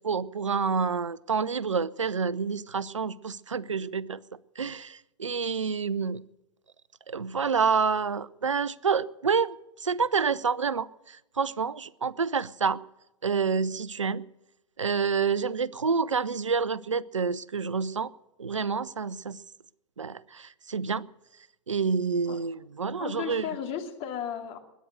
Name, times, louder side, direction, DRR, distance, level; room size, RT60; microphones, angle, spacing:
voice 1, 0.0-4.2 4.6-6.2 7.1-12.8 13.2-14.2 14.8-18.1 18.4-19.4 20.0-21.1 21.7-23.5, right 5 dB, 80° right, 0.5 m, -28 dB
voice 2, 23.0-24.6, left 8 dB, 40° left, 2.5 m, -34 dB
22.0 x 10.0 x 6.4 m
figure-of-eight pair, 95°, 16 cm